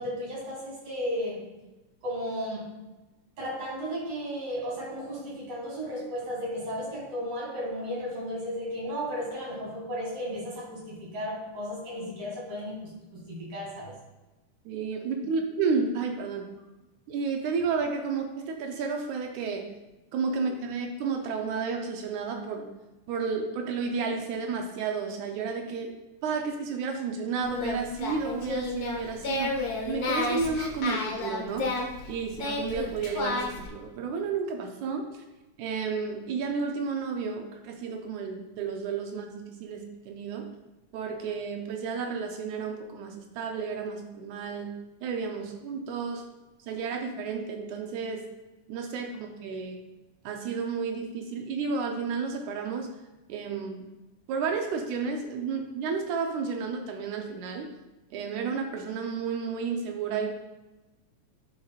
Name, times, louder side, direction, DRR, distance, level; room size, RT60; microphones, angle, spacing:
voice 1, 0.0-1.5 2.0-2.7 3.4-13.9, equal, 50° right, -5 dB, 3.4 m, -34 dB
voice 2, 14.7-16.5 17.1-19.7 20.1-22.6 23.1-25.9 26.2-35.2 35.6-40.5 40.9-44.7 45.0-46.2 46.7-48.2 48.7-49.8 50.2-52.9 53.3-53.8 54.3-57.7 58.1-60.3, right 5 dB, 80° right, 3 dB, 2.1 m, -32 dB
Singing, 27.4-33.7, left 2 dB, 90° left, 0.8 m, -32 dB
11.5 x 5.5 x 2.4 m, 1.0 s
omnidirectional pair, 3.5 m